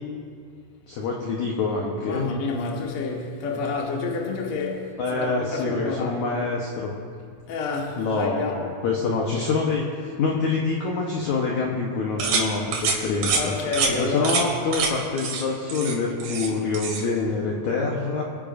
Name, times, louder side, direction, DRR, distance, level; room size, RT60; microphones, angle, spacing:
voice 1, 0.9-2.3 5.0-6.9 8.0-13.7 14.0-18.2, left 4 dB, 75° left, 1.8 m, -26 dB
voice 2, 2.0-6.1 7.5-8.6 13.3-14.4, left 4 dB, 60° left, 1.5 m, -29 dB
sound 1, 12.2-12.5 12.7-13.0 13.2-13.4 13.7-13.9 14.2-14.4 14.7-14.9 15.2-15.4 15.7-16.5 16.7-17.0, right 5 dB, 80° right, 3.9 m, -25 dB
25.5 x 10.0 x 2.6 m
omnidirectional pair, 4.9 m